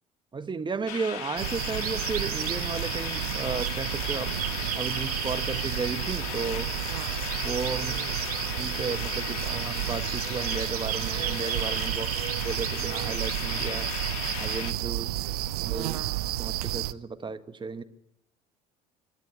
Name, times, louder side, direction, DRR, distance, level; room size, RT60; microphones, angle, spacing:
voice 1, 0.3-4.3 4.8-6.7 7.4-7.9 8.6-12.1 12.4-13.9 14.4-15.1 15.6-16.0 16.3-17.8, right 5 dB, 25° right, 9 dB, 1.8 m, -34 dB
sound 1, 0.9-14.7, left 10 dB, 75° left, 1.8 m, -37 dB
sound 2, 1.4-16.9, right 15 dB, 80° right, 0.7 m, -31 dB
voice 2, 7.7-8.3 15.0-15.5, right 9 dB, 65° right, 3 dB, 3.1 m, -49 dB
25.5 x 12.0 x 9.9 m, 0.82 s
hypercardioid pair, 65°, 19 cm